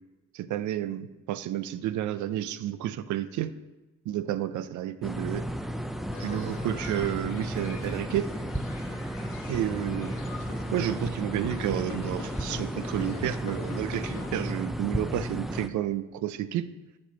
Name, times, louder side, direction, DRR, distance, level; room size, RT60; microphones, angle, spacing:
voice 1, 0.3-3.5 4.1-5.4 6.2-8.3 9.5-10.1 10.4-16.7, right 12 dB, 75° right, 14 dB, 0.5 m, -31 dB
sound 1, 5.0-15.7, equal, ahead, 0.4 m, -34 dB
sound 2, 6.1-14.6, left 4 dB, 80° left, 1.3 m, -44 dB
7.4 x 4.3 x 5.6 m, 1.1 s
cardioid pair, 90°, 30 cm